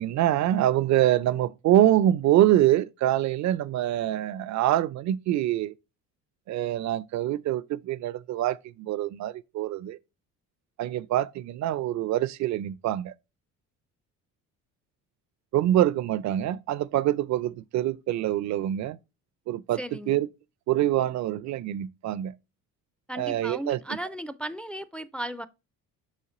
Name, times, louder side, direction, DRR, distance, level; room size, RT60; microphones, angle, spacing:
voice 1, 0.0-5.7 6.5-10.0 10.8-13.1 15.5-19.0 19.5-20.3 20.7-22.3 23.2-23.8, right 13 dB, 60° right, 0.5 m, -25 dB
voice 2, 19.8-20.2 23.1-25.5, right 1 dB, 5° left, 0.3 m, -35 dB
6.4 x 4.3 x 3.7 m
cardioid pair, 95°, 33 cm